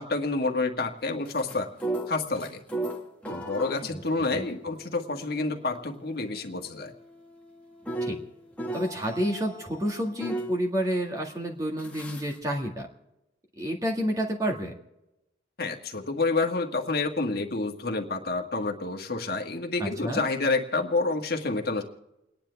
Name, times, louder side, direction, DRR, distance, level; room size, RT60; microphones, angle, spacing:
voice 1, 0.0-1.7 2.1-2.6 3.3-6.9 15.6-21.8, left 3 dB, 55° left, 3 dB, 1.6 m, -28 dB
sound 1, 1.3-10.6 11.8-12.4, right 1 dB, 10° left, 1.6 m, -37 dB
voice 2, 8.7-12.9 13.6-14.7 19.8-20.2, equal, 20° right, 0 dB, 1.8 m, -29 dB
30.0 x 10.0 x 3.4 m, 0.93 s
head